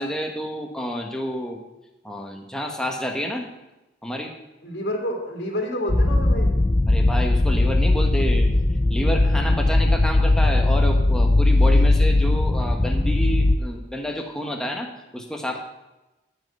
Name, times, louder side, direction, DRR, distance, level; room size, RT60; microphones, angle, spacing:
voice 1, 0.0-1.6 2.0-3.5 4.0-4.3 6.9-8.5 8.9-15.6, equal, 5° left, 2 dB, 1.2 m, -29 dB
voice 2, 4.6-6.6, left 1 dB, 60° left, 0 dB, 2.3 m, -28 dB
sound 1, 5.9-13.6, left 2 dB, 20° left, 0.4 m, -19 dB
13.5 x 5.5 x 6.5 m, 1.0 s
head